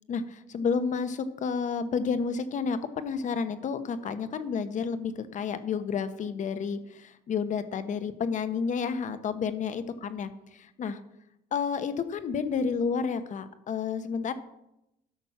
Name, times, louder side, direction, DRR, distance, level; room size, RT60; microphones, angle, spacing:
voice 1, 0.1-11.0 11.5-14.3, left 6 dB, 45° left, 11 dB, 1.0 m, -30 dB
12.0 x 6.0 x 5.8 m, 0.86 s
cardioid pair, 110°, 17 cm